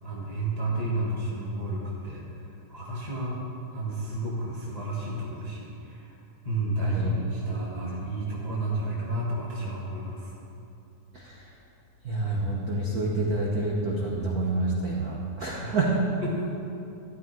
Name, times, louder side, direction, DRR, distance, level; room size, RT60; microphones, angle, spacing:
voice 1, 0.0-3.4 3.7-6.1 6.4-10.3 15.6-15.8 16.2-16.5, right 1 dB, 20° left, -6 dB, 1.2 m, -31 dB
voice 2, 6.8-7.1 12.0-15.9, right 2 dB, 80° right, -3 dB, 0.8 m, -28 dB
13.0 x 12.5 x 4.6 m, 2.8 s
omnidirectional pair, 3.6 m